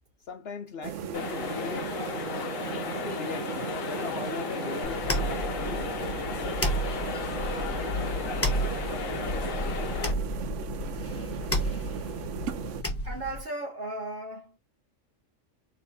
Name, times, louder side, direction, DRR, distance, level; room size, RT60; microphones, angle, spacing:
voice 1, 0.3-2.0 2.9-5.9, left 6 dB, 60° left, 0.8 m, -39 dB
sound 1, 0.8-12.8, right 9 dB, 70° right, 0.9 m, -37 dB
sound 2, 1.1-10.1, left 6 dB, 90° left, 1.2 m, -35 dB
sound 3, 4.8-13.4, equal, 10° left, 0.9 m, -32 dB
voice 2, 13.1-14.6, right 2 dB, 45° right, 2.4 m, -36 dB
4.4 x 3.1 x 2.7 m
omnidirectional pair, 1.3 m